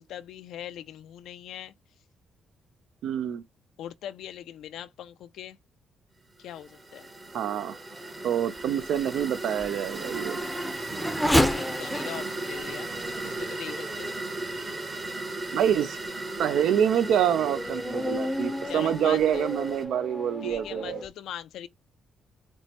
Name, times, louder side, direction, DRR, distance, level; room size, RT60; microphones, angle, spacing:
voice 1, 0.0-1.7 3.8-5.6 6.4-7.1 11.5-12.9 13.2-14.2 18.7-19.5 20.4-21.7, left 11 dB, 80° left, 0.3 m, -41 dB
voice 2, 3.0-3.4 7.3-7.8 8.2-10.4 15.5-16.0 16.4-21.0, right 9 dB, 80° right, 0.4 m, -26 dB
sound 1, 6.5-19.8, right 2 dB, 30° right, 0.9 m, -37 dB
Race car auto racing / Accelerating revving vroom, 7.0-15.0 15.6-15.7 16.3-21.1, left 1 dB, 5° left, 0.5 m, -33 dB
4.3 x 2.1 x 2.8 m
cardioid pair, 90°, 0 cm